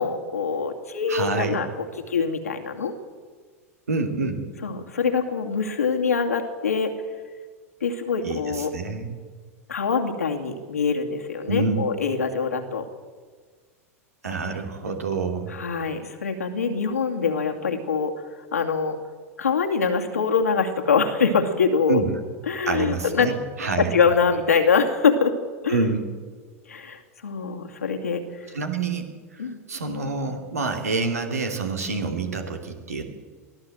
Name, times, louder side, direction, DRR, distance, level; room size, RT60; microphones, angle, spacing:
voice 1, 0.0-2.9 4.6-6.9 7.8-8.7 9.7-12.8 15.5-18.1 18.5-19.0 19.4-22.0 22.5-23.3 23.8-25.4 25.6-25.8 26.7-28.5 29.4-29.6, left 5 dB, 90° left, 3 dB, 2.5 m, -24 dB
voice 2, 1.1-1.6 3.9-4.4 8.2-9.2 11.5-11.9 14.2-15.5 21.9-22.1 22.7-23.9 25.7-26.1 28.5-29.0 29.3-29.4 29.7-33.0, right 3 dB, 85° right, 4 dB, 2.7 m, -27 dB
23.0 x 15.0 x 7.9 m, 1.5 s
hypercardioid pair, 90°, 8 cm